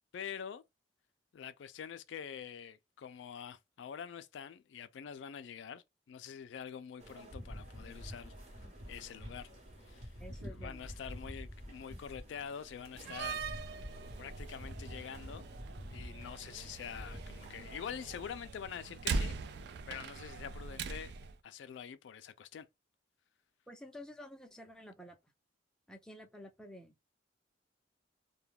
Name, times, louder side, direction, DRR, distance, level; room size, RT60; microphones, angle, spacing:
voice 1, 0.1-0.6 1.3-9.5 9.9-10.2 10.5-13.5 14.2-15.5 15.9-19.4 19.9-21.1 21.4-22.7, left 8 dB, 75° left, 0.3 m, -46 dB
sound 1, 7.0-18.3, equal, 40° right, 0.9 m, -48 dB
voice 2, 10.2-10.9 23.7-25.2 25.9-27.0, left 1 dB, 5° left, 0.4 m, -51 dB
Slam, 12.9-21.3, right 4 dB, 60° right, 0.3 m, -41 dB
2.2 x 2.1 x 3.2 m
head